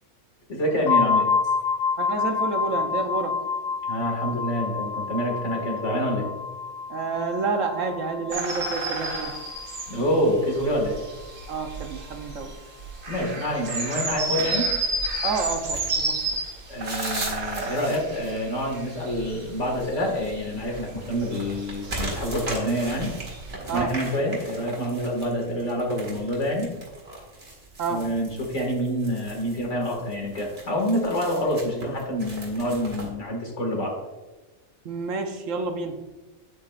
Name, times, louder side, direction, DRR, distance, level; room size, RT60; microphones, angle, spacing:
voice 1, 0.5-1.3 3.9-6.3 9.9-11.0 13.1-14.7 16.7-23.1 23.7-26.7 27.9-34.0, equal, 55° left, 0 dB, 2.2 m, -27 dB
sound 1, 0.9-10.5, left 5 dB, 70° left, 1.0 m, -28 dB
voice 2, 2.0-3.4 6.9-9.4 11.5-12.6 15.2-16.4 23.7-24.0 27.8-28.1 34.8-36.0, right 4 dB, 65° right, 5 dB, 1.1 m, -29 dB
sound 2, 8.3-23.5, right 3 dB, 80° right, 2.0 m, -32 dB
sound 3, 14.4-33.1, right 2 dB, 45° right, 2.1 m, -39 dB
8.6 x 8.6 x 2.4 m, 1.2 s
omnidirectional pair, 1.5 m